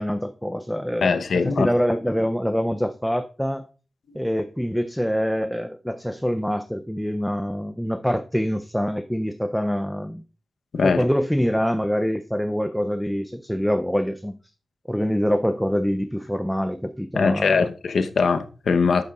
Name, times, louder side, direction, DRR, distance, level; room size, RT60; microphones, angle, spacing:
voice 1, 0.0-3.7 4.1-10.2 10.8-14.4 14.9-17.7, equal, ahead, 0.4 m, -25 dB
voice 2, 1.0-1.7 10.7-11.0 17.1-19.0, left 5 dB, 75° left, 0.8 m, -21 dB
11.5 x 8.0 x 2.4 m
wide cardioid pair, 140°, 0 cm